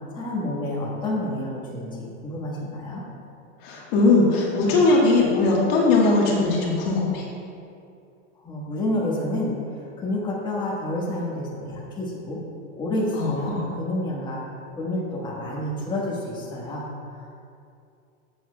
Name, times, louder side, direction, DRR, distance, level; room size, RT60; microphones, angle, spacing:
voice 1, 0.1-3.0 8.4-12.4 12.8-14.4 14.8-16.8 17.1-17.3, left 1 dB, 10° left, -6 dB, 1.4 m, -29 dB
voice 2, 3.6-7.2 13.1-13.7, left 3 dB, 55° left, -3 dB, 1.5 m, -20 dB
11.5 x 7.2 x 2.3 m, 2.5 s
supercardioid pair, 150°, 37 cm